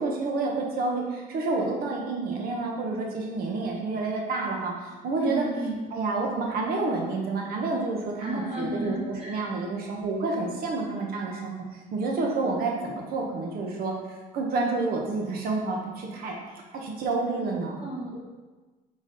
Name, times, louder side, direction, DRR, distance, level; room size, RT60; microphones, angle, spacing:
voice 1, 0.0-5.5 5.9-13.9 14.3-17.9, right 3 dB, 60° right, 0 dB, 0.9 m, -29 dB
voice 2, 5.1-5.8 8.2-9.5 17.8-18.2, right 1 dB, 35° right, -3 dB, 1.2 m, -33 dB
3.9 x 3.4 x 3.9 m, 1.2 s
cardioid pair, 110°, 17 cm